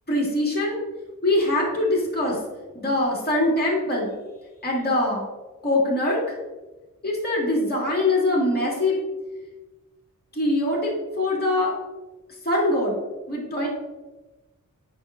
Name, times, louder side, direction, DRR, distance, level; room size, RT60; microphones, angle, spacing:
voice 1, 0.1-0.8 1.2-2.4 2.7-4.1 4.6-5.3 5.6-6.4 7.0-9.0 10.3-11.7 12.4-13.0 13.3-13.7, left 1 dB, 30° left, -4 dB, 1.9 m, -23 dB
8.6 x 5.3 x 2.5 m, 1.2 s
wide cardioid pair, 95°, 32 cm